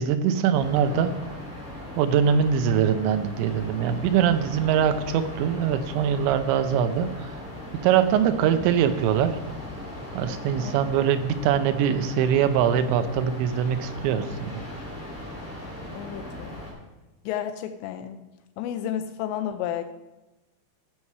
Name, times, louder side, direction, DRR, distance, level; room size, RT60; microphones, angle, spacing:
voice 1, 0.0-1.4 2.0-7.4 7.7-9.4 10.1-14.6, right 8 dB, 90° right, 10 dB, 3.0 m, -23 dB
sound 1, 0.5-16.7, left 1 dB, 5° right, 3.3 m, -38 dB
voice 2, 15.9-16.6 17.3-18.2 18.6-19.8, left 10 dB, 85° left, 7 dB, 2.8 m, -31 dB
15.5 x 5.6 x 4.7 m, 1.1 s
omnidirectional pair, 5.1 m